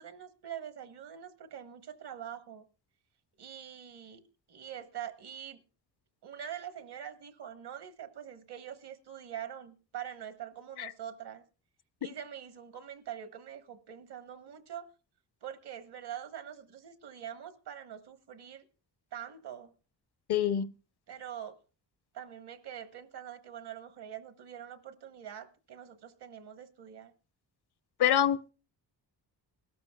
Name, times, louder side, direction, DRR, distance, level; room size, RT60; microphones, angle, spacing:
voice 1, 0.0-2.6 3.4-4.2 4.5-5.6 6.2-11.4 12.0-14.9 15.4-18.6 19.1-19.7 21.1-21.5 22.1-27.1, right 9 dB, 65° right, 1.2 m, -44 dB
voice 2, 20.3-20.7 28.0-28.5, left 10 dB, 65° left, 0.7 m, -26 dB
21.0 x 13.0 x 2.3 m
cardioid pair, 105°, 42 cm